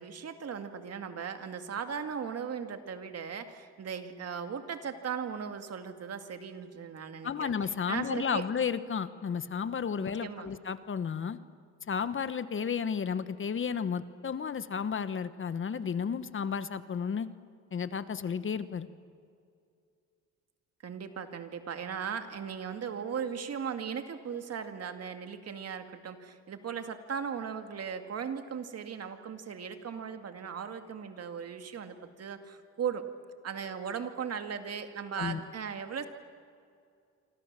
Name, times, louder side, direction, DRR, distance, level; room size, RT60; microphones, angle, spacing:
voice 1, 0.0-7.5 7.9-8.5 10.2-10.5 20.8-33.0 33.4-36.1, right 7 dB, 55° right, 7 dB, 2.4 m, -38 dB
voice 2, 7.2-11.4 11.9-17.3 17.7-18.9 35.2-35.4, left 6 dB, 40° left, 13 dB, 1.2 m, -33 dB
27.0 x 26.0 x 7.6 m, 2.4 s
cardioid pair, 90°, 30 cm